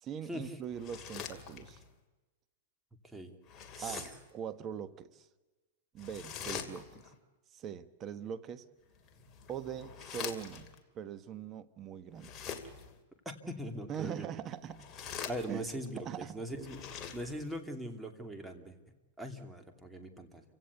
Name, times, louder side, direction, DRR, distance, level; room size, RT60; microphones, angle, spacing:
voice 1, 0.0-1.8 3.8-5.3 5.9-7.1 7.5-8.6 9.5-10.7 10.9-12.3 13.9-14.9 15.5-15.6 16.0-16.4, right 8 dB, 30° right, 1.3 m, -42 dB
sound 1, 0.7-1.9 3.4-4.3 6.0-7.1 8.9-10.8 12.1-13.0 14.6-15.9 16.5-17.6, left 7 dB, 25° left, 2.6 m, -44 dB
voice 2, 3.8-4.1 13.2-14.3 15.2-16.8 17.1-18.8 19.2-20.4, equal, 5° right, 2.6 m, -41 dB
29.0 x 17.0 x 8.2 m
hypercardioid pair, 140°, 0 cm